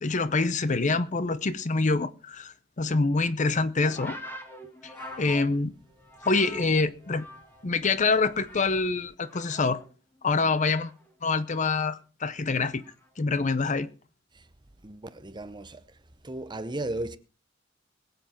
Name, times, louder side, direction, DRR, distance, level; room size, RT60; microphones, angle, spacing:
voice 1, 0.0-4.2 4.8-5.7 6.3-7.3 7.6-9.8 10.2-10.9 11.2-12.8 13.2-13.9, left 3 dB, 40° left, 0.7 m, -26 dB
sound 1, 3.8-7.7 8.0-8.9 9.2-11.9 12.8-13.1, equal, 10° left, 2.2 m, -45 dB
voice 2, 14.8-15.8 16.2-17.2, right 1 dB, 25° right, 0.9 m, -35 dB
21.5 x 7.9 x 4.5 m
head